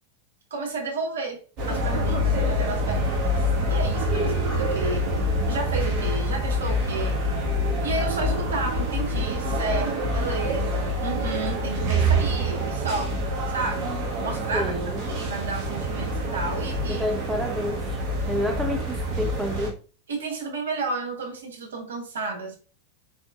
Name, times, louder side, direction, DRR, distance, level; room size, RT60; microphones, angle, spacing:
voice 1, 0.5-5.1 5.5-7.2 7.8-13.2 13.5-14.7 15.1-17.0 20.1-22.6, right 3 dB, 65° right, 1.1 m, -32 dB
sound 1, 1.6-19.7, equal, 35° right, 1.4 m, -26 dB
voice 2, 14.5-15.3 16.9-19.8, left 1 dB, 5° right, 0.7 m, -30 dB
4.3 x 4.1 x 2.3 m
figure-of-eight pair, 90°, 0 cm